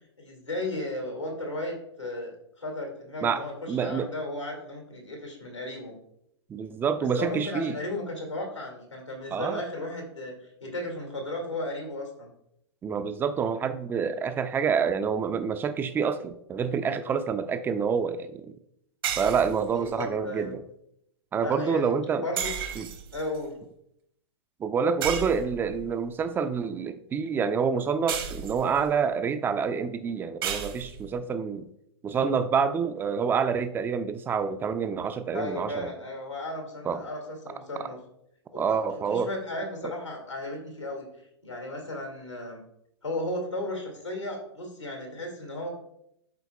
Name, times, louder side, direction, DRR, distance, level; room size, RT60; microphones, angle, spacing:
voice 1, 0.2-2.3 2.6-6.0 7.0-12.3 19.7-20.6 21.4-21.9 22.2-22.5 23.1-23.6 35.3-38.0 38.5-41.1 41.4-42.6 43.0-45.7, left 1 dB, 90° left, 0 dB, 2.2 m, -35 dB
voice 2, 3.2-4.1 6.5-7.8 9.3-9.6 12.8-18.5 19.2-20.6 21.3-22.3 22.8-22.9 24.6-31.7 32.0-35.9 36.9-37.0 37.8-37.9 38.5-39.3, right 6 dB, 15° right, 11 dB, 0.4 m, -27 dB
sound 1, 19.0-20.1 22.4-23.4 25.0-25.9 28.1-28.9 30.4-31.1, right 8 dB, 55° right, 1.1 m, -33 dB
12.0 x 4.1 x 2.3 m, 0.76 s
figure-of-eight pair, 105°, 15 cm